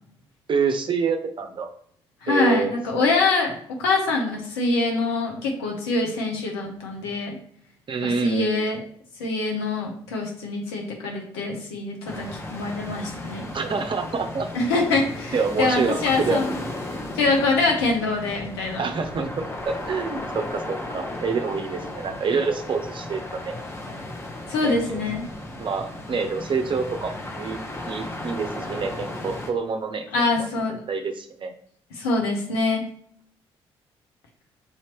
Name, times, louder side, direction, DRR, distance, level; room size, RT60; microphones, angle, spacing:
voice 1, 0.5-1.7 2.3-3.3 7.9-8.7 13.5-14.5 15.3-16.4 17.6-17.7 18.8-23.5 24.6-25.0 25.6-27.6 27.9-31.5, right 5 dB, 40° right, 6 dB, 0.7 m, -27 dB
voice 2, 2.2-7.4 8.0-8.8 9.2-13.4 14.5-16.5 17.1-18.8 24.5-25.2 30.1-30.8 32.0-32.8, left 3 dB, 75° left, 0 dB, 0.9 m, -24 dB
sound 1, 12.0-29.5, left 1 dB, 20° left, 0.9 m, -35 dB
5.5 x 2.9 x 3.1 m, 0.62 s
figure-of-eight pair, 40°, 13 cm